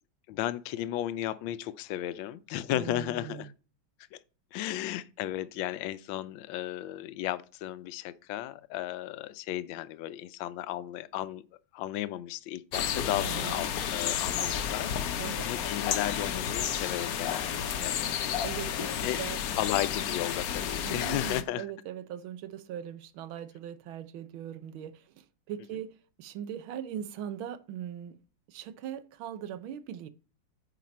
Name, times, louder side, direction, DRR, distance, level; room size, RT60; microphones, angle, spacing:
voice 1, 0.3-3.5 4.1-4.2 4.5-11.4 11.7-18.0 19.0-19.2 19.6-21.6, left 13 dB, 80° left, 1.3 m, -34 dB
voice 2, 2.7-3.5 13.2-13.7 15.2-15.5 18.4-19.4 20.8-28.2 28.5-30.1, right 10 dB, 85° right, 1.5 m, -40 dB
sound 1, 12.7-21.4, left 9 dB, 65° left, 1.0 m, -31 dB
9.2 x 5.0 x 4.3 m
omnidirectional pair, 2.2 m